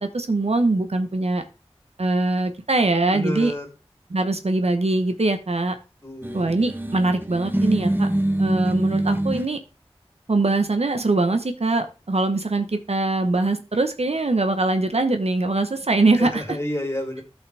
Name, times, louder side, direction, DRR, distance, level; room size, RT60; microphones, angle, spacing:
voice 1, 0.0-1.4 2.0-3.5 4.1-5.8 6.3-8.1 8.4-9.6 10.3-16.3, right 2 dB, 75° right, 7 dB, 1.0 m, -22 dB
voice 2, 3.1-3.7 6.0-6.5 16.2-17.2, left 1 dB, 25° left, 2 dB, 3.4 m, -29 dB
sound 1, 6.2-9.5, right 1 dB, 20° right, 1.0 m, -24 dB
13.5 x 5.5 x 3.4 m, 0.31 s
wide cardioid pair, 45°, 11 cm